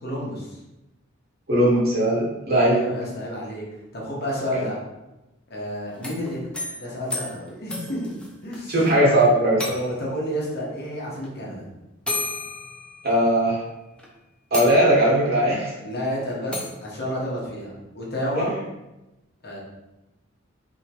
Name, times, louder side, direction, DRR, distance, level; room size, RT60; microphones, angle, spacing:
voice 1, 0.0-0.6 2.6-3.6 3.9-4.8 5.5-6.4 6.8-8.1 8.4-8.7 9.6-11.7 15.8-18.6 19.4-19.6, equal, 50° left, -4 dB, 1.0 m, -30 dB
voice 2, 1.5-2.8 4.5-4.6 8.7-9.6 13.0-13.6 14.5-15.7, right 1 dB, 50° right, -5 dB, 1.2 m, -19 dB
sound 1, 5.9-8.9 9.2-9.3 9.6-10.2 11.2-11.3 12.1-13.5 14.0-14.1 14.5-15.2 16.5-16.8, left 2 dB, 5° left, 0.5 m, -33 dB
3.5 x 2.8 x 2.9 m, 0.98 s
head